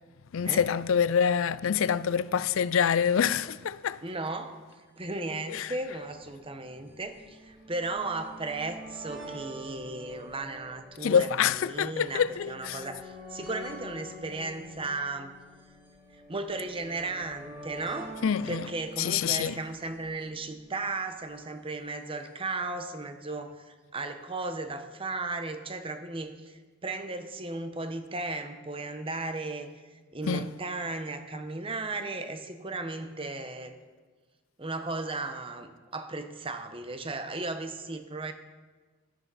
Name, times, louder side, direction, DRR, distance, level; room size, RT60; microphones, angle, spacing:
voice 1, 0.3-4.0 5.5-5.7 11.0-12.8 18.2-18.7 19.0-19.6 30.2-30.5, left 7 dB, 65° left, 0.4 m, -26 dB
voice 2, 4.0-4.6 5.0-15.3 16.3-18.1 18.5-33.7 34.6-38.3, right 3 dB, 25° right, 0.9 m, -35 dB
sound 1, 4.7-4.8 5.0-5.1 5.9-21.2 22.1-22.2 22.4-22.5, equal, 10° right, 4.8 m, -47 dB
15.5 x 12.5 x 4.1 m
head